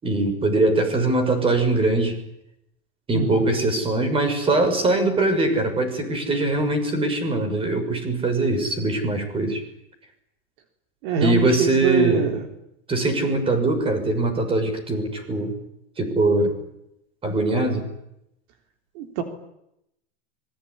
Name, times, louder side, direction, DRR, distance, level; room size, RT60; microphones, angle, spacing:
voice 1, 0.0-2.2 3.1-9.6 11.2-12.3 12.9-15.5 16.0-16.5 17.2-17.8, right 2 dB, 15° right, 9 dB, 6.5 m, -22 dB
voice 2, 3.1-3.5 11.0-12.5 19.0-19.2, right 6 dB, 55° right, 6 dB, 3.6 m, -24 dB
25.5 x 22.0 x 9.9 m, 0.81 s
supercardioid pair, 145°, 32 cm